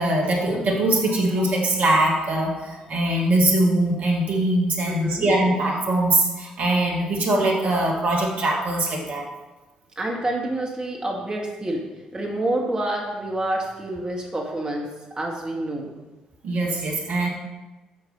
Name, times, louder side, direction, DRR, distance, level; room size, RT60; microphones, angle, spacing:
voice 1, 0.0-9.3 16.4-17.3, right 1 dB, 50° right, -1 dB, 2.3 m, -22 dB
voice 2, 4.9-5.3 10.0-11.8 12.1-14.9 15.2-15.9, right 1 dB, 25° right, -1 dB, 2.0 m, -27 dB
8.9 x 7.4 x 5.5 m, 1.1 s
figure-of-eight pair, 45°, 3 cm